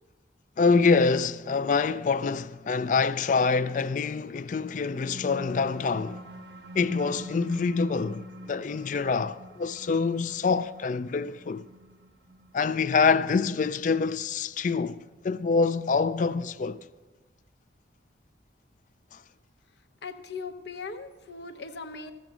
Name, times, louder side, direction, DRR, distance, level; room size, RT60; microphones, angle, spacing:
voice 1, 0.6-6.2 6.7-11.6 12.5-16.8 19.1-19.2, left 4 dB, 45° left, 0.3 m, -26 dB
sound 1, 4.6-15.6, right 1 dB, 65° right, 0.7 m, -46 dB
voice 2, 19.8-22.1, left 4 dB, 65° left, 0.8 m, -39 dB
14.5 x 6.9 x 6.1 m
head